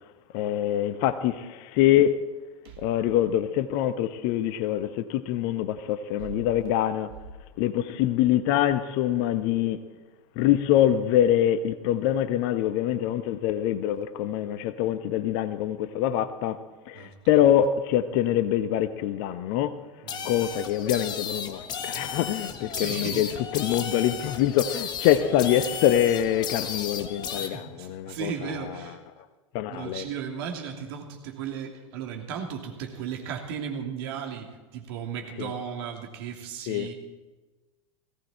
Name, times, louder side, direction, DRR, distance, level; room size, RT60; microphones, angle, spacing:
voice 1, 0.3-2.2 2.8-7.1 7.6-9.8 10.4-19.8 20.2-23.3 23.5-28.3 29.5-30.0 35.4-35.5 36.7-36.9, left 11 dB, 40° left, 0.8 m, -24 dB
voice 2, 16.9-17.4 20.0-20.6 22.7-23.4 27.4-29.0 29.7-36.9, right 7 dB, 50° right, 2.9 m, -36 dB
sound 1, 20.1-27.5, left 7 dB, 25° left, 1.4 m, -34 dB
18.5 x 16.5 x 4.4 m
figure-of-eight pair, 90°, 16 cm